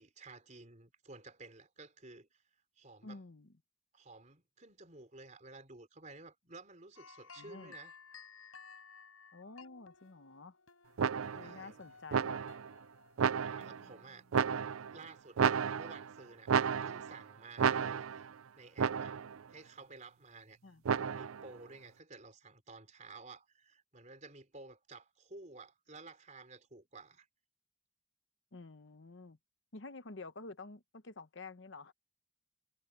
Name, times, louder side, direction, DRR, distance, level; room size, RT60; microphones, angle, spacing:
voice 1, 0.0-2.4 2.8-3.2 3.9-8.0 11.4-11.8 13.4-14.3 14.5-18.3 18.6-19.2 19.5-20.6 20.9-27.3, right 3 dB, 35° right, 4.0 m, -53 dB
voice 2, 3.0-3.5 7.4-7.7 9.3-10.6 11.3-12.4 20.6-20.8 28.5-29.4 29.7-31.9, left 3 dB, 60° left, 0.9 m, -50 dB
sound 1, 6.9-14.5, left 5 dB, 85° left, 6.1 m, -57 dB
sound 2, 11.0-11.6 12.1-12.7 13.2-13.8 14.3-15.0 15.4-16.1 16.5-17.2 17.6-18.3 18.8-19.4 20.9-21.5, right 7 dB, 85° right, 0.5 m, -32 dB
head